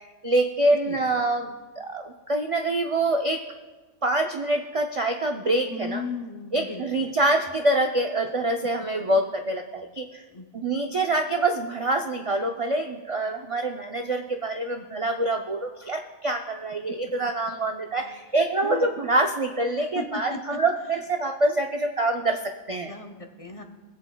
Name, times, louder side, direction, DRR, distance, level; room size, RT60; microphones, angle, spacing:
voice 1, 0.0-3.4 4.0-6.0 6.5-10.2 10.5-22.9, right 2 dB, 50° right, 3 dB, 0.4 m, -25 dB
voice 2, 5.7-7.1 8.6-8.7 10.3-10.7 18.0-18.1 18.6-18.9 19.8-20.6 22.9-23.6, left 4 dB, 35° left, 4 dB, 0.7 m, -36 dB
22.0 x 8.2 x 2.2 m, 1.2 s
omnidirectional pair, 1.2 m